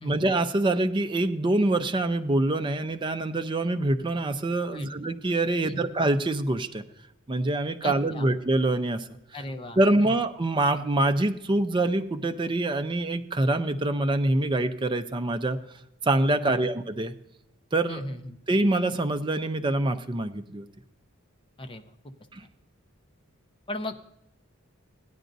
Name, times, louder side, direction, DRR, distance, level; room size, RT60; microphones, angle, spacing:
voice 1, 0.0-6.8 7.3-9.0 9.3-9.4 9.8-15.6 16.0-17.1 17.7-18.1 18.5-20.7 22.3-22.4, right 2 dB, 20° right, 8 dB, 0.5 m, -25 dB
voice 2, 7.8-8.3 9.3-10.1 16.4-16.6 17.9-18.4 21.6-21.8 23.7-24.0, left 1 dB, 25° left, 6 dB, 0.6 m, -37 dB
16.0 x 10.0 x 2.6 m, 0.84 s
head